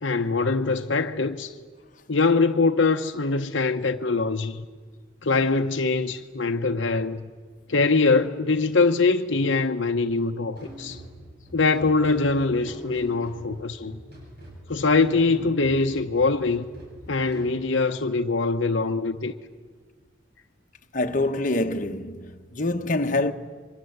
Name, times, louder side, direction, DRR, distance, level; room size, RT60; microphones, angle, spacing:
voice 1, 0.0-1.5 2.1-4.6 5.2-7.3 7.7-11.0 11.5-14.0 14.7-16.7 17.1-19.3, left 3 dB, 65° left, 0.9 m, -23 dB
sound 1, 10.6-17.6, right 1 dB, 55° right, 7.7 m, -43 dB
voice 2, 20.9-23.3, left 2 dB, 40° left, 1.2 m, -25 dB
27.5 x 24.0 x 8.0 m
head